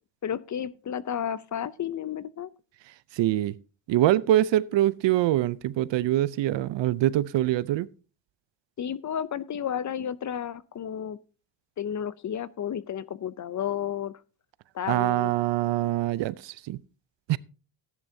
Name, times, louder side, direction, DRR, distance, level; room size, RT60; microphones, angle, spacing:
voice 1, 0.2-2.5 8.8-11.2 11.8-14.1 14.7-15.3, left 9 dB, 35° left, 0.5 m, -32 dB
voice 2, 3.1-3.5 3.9-7.9 14.9-16.8 17.3-17.4, right 14 dB, 60° right, 0.6 m, -24 dB
14.5 x 10.5 x 2.7 m
cardioid pair, 95°, 49 cm